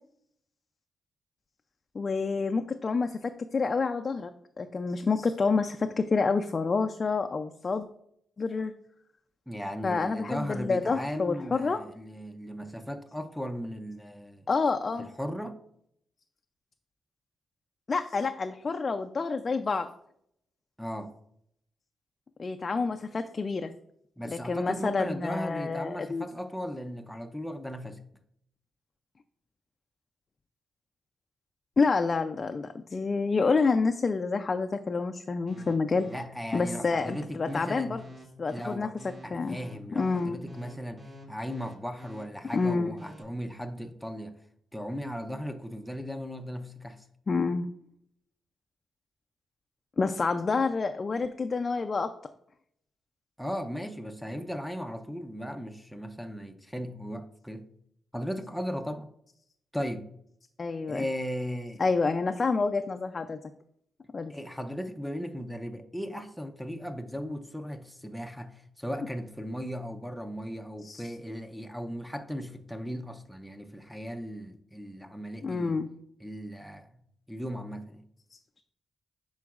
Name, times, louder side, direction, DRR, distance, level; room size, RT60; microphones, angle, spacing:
voice 1, 1.9-4.3 4.6-7.9 8.4-8.7 9.8-11.8 14.5-15.1 17.9-19.9 22.4-23.7 24.3-26.2 31.8-36.1 36.5-38.0 38.4-38.9 39.3-39.6 40.0-40.4 42.5-42.9 47.3-47.7 50.0-52.1 60.6-61.1 61.8-63.4 64.1-64.3 70.8-71.0 75.4-75.9 78.3-78.4, left 4 dB, 40° left, 6 dB, 0.4 m, -28 dB
voice 2, 9.5-14.5 15.0-15.6 20.8-21.1 24.2-28.0 36.1-38.0 38.5-39.0 39.2-44.4 44.7-47.1 53.4-57.6 58.1-59.1 59.7-60.1 60.9-61.8 64.3-75.8 76.2-77.0 77.3-78.0, equal, ahead, 6 dB, 0.6 m, -37 dB
sound 1, 35.5-43.2, right 1 dB, 45° right, 2.2 m, -47 dB
10.5 x 3.9 x 2.4 m, 0.71 s
cardioid pair, 70°, 0 cm